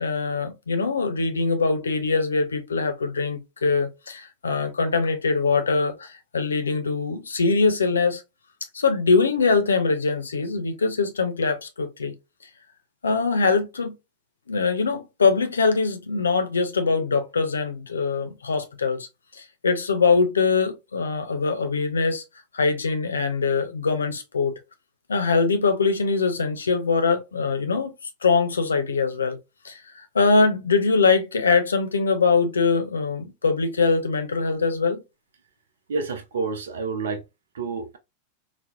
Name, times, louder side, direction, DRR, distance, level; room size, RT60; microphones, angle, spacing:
voice 1, 0.0-8.2 8.7-12.1 13.0-13.9 14.5-19.1 19.3-22.2 22.5-24.5 25.1-27.9 28.2-29.4 29.6-29.8 30.1-35.0, left 4 dB, 70° left, 0.6 m, -22 dB
voice 2, 35.9-37.2 37.5-38.0, right 4 dB, 65° right, 0.5 m, -29 dB
4.2 x 2.0 x 2.3 m
figure-of-eight pair, 90°, 0 cm